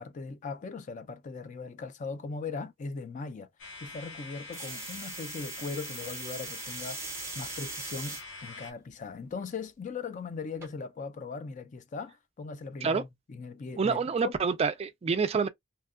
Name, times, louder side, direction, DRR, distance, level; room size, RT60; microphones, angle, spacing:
voice 1, 0.0-3.5 3.8-7.0 7.4-14.0 14.2-14.3, left 4 dB, 40° left, 0.4 m, -39 dB
sound 1, 3.6-8.7, left 3 dB, 75° left, 0.8 m, -45 dB
sound 2, 4.5-8.2 8.9-9.3 10.6-10.7, right 4 dB, 15° right, 0.7 m, -40 dB
voice 2, 13.8-15.5, right 5 dB, 30° right, 0.3 m, -27 dB
2.8 x 2.2 x 2.4 m
head